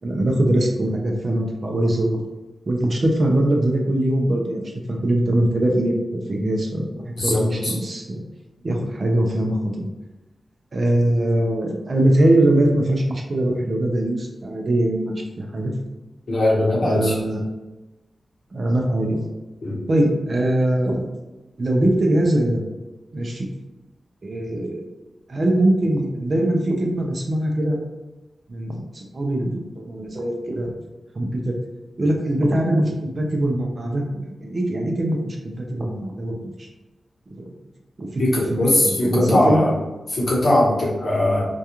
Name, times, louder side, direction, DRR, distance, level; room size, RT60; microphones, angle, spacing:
voice 1, 0.0-2.2 2.7-4.6 4.9-8.2 8.6-9.9 10.7-15.7 16.8-17.4 18.5-19.3 19.9-21.1 21.6-22.6 23.1-23.5 24.2-24.9 25.3-27.8 28.5-30.7 31.2-31.6 32.0-34.0 34.4-36.7 37.3-37.5 38.0-39.7, right 1 dB, 40° right, 1 dB, 0.4 m, -22 dB
voice 2, 7.2-7.7 16.3-17.1 19.6-19.8 38.2-39.7 40.1-41.5, left 1 dB, 55° left, -6 dB, 1.0 m, -20 dB
2.3 x 2.2 x 2.9 m, 1.1 s
wide cardioid pair, 155°, 0 cm